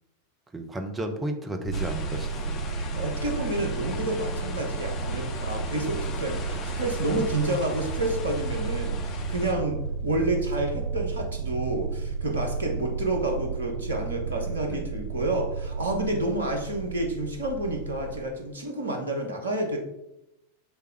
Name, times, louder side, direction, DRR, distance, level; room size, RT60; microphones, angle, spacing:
voice 1, 0.5-2.8 14.7-14.8, right 1 dB, 15° right, 5 dB, 0.8 m, -33 dB
sound 1, 1.6-18.2, right 5 dB, 45° right, 1.4 m, -32 dB
sound 2, 1.7-9.5, left 5 dB, 35° left, 0.7 m, -39 dB
voice 2, 2.9-19.8, right 1 dB, 70° right, 2 dB, 1.3 m, -29 dB
6.0 x 3.4 x 4.8 m, 0.87 s
figure-of-eight pair, 90°, 0 cm